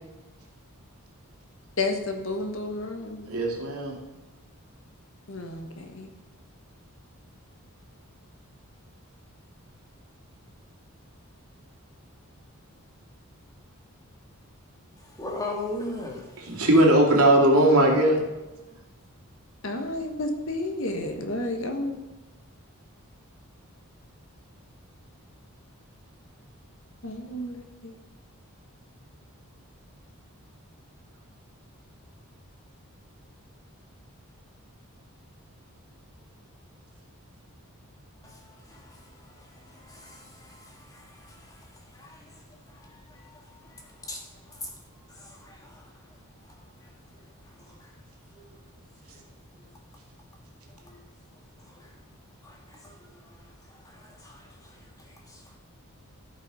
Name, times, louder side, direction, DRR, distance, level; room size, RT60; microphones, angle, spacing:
voice 1, 1.8-3.3 5.3-6.1 19.6-22.0 27.0-27.9, left 2 dB, 60° left, 1.4 m, -31 dB
voice 2, 3.3-3.9 16.5-18.2, right 1 dB, 90° right, 2.4 m, -19 dB
voice 3, 15.0-16.7 38.2-48.0 48.3-48.7 49.1-49.3 49.6-49.7 50.6-51.0 51.6-52.0 52.4-55.6, left 2 dB, 15° left, 1.6 m, -42 dB
14.5 x 5.5 x 4.9 m
head